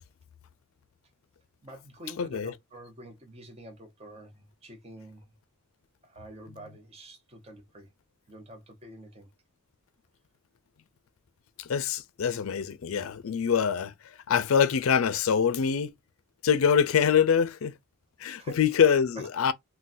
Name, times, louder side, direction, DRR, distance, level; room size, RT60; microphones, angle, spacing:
voice 1, 1.6-5.2 6.0-7.9 8.3-9.3 18.4-18.6 19.2-19.5, right 1 dB, 25° right, 0.7 m, -46 dB
voice 2, 2.2-2.5 11.6-15.9 16.4-17.8 18.2-19.5, left 7 dB, 70° left, 0.4 m, -25 dB
3.7 x 2.2 x 2.5 m
head